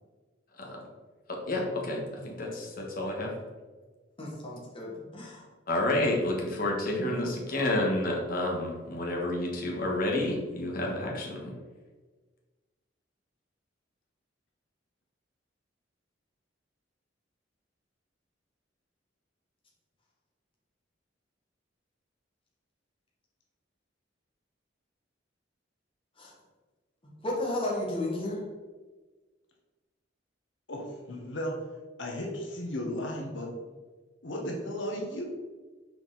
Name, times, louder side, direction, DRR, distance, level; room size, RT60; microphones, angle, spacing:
voice 1, 1.3-3.3 5.7-11.5, left 1 dB, 50° left, -1 dB, 1.4 m, -30 dB
voice 2, 4.2-5.4 26.2-26.3 27.0-28.4, left 1 dB, 30° left, -4 dB, 1.7 m, -33 dB
voice 3, 30.7-31.5 32.0-33.5 34.2-35.2, left 1 dB, 90° left, -1 dB, 1.2 m, -35 dB
6.2 x 4.6 x 4.0 m, 1.3 s
head